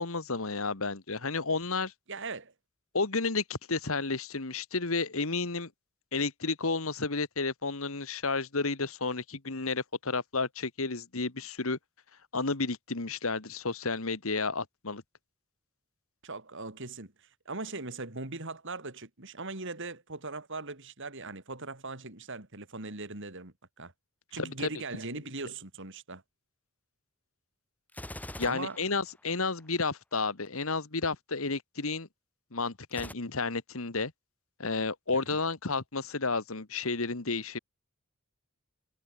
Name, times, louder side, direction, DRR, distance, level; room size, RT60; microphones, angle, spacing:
voice 1, 0.0-1.9 2.9-5.7 6.1-11.8 12.3-15.0 24.4-24.7 28.4-32.1 32.5-34.1 34.6-37.6, left 3 dB, 65° left, 1.8 m, -31 dB
voice 2, 2.1-2.5 16.2-23.9 24.3-26.2 28.4-28.8 35.3-35.4, right 3 dB, 60° right, 3.4 m, -40 dB
Gunshot gunfire, 27.9-29.7 32.9-33.1, left 1 dB, 5° left, 2.6 m, -43 dB
head